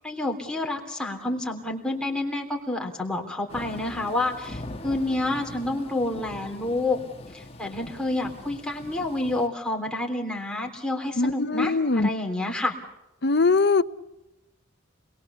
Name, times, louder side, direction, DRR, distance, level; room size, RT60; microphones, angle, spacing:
voice 1, 0.0-7.0 7.3-12.8, left 2 dB, 5° left, 0 dB, 3.4 m, -29 dB
Thunder / Rain, 3.5-9.5, left 1 dB, 30° left, 1.3 m, -41 dB
voice 2, 11.2-12.1 13.2-13.8, left 3 dB, 55° left, 11 dB, 0.8 m, -21 dB
27.0 x 22.0 x 7.0 m, 0.98 s
head